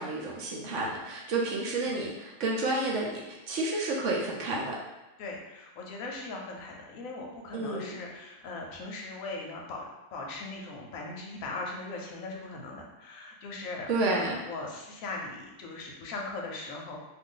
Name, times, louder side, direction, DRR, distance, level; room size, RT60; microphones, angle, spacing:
voice 1, 0.0-4.8 7.5-8.0 13.9-14.4, right 2 dB, 65° right, -3 dB, 0.8 m, -30 dB
voice 2, 5.2-17.0, left 3 dB, 70° left, -1 dB, 0.9 m, -39 dB
2.6 x 2.5 x 3.7 m, 1.0 s
omnidirectional pair, 1.7 m